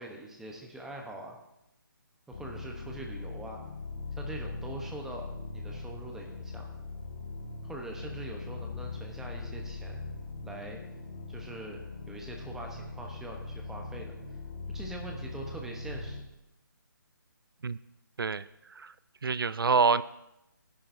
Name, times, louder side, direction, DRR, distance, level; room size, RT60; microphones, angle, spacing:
voice 1, 0.0-1.4 2.3-3.6 4.1-5.3 5.5-6.7 7.6-10.0 10.4-10.8 11.3-14.1 14.7-16.2, right 2 dB, 5° right, 1 dB, 0.9 m, -43 dB
sound 1, 2.3-16.2, left 3 dB, 40° left, 1.8 m, -40 dB
voice 2, 19.2-20.0, right 5 dB, 90° right, 17 dB, 0.4 m, -26 dB
17.0 x 10.5 x 2.7 m, 0.88 s
hypercardioid pair, 160°, 11 cm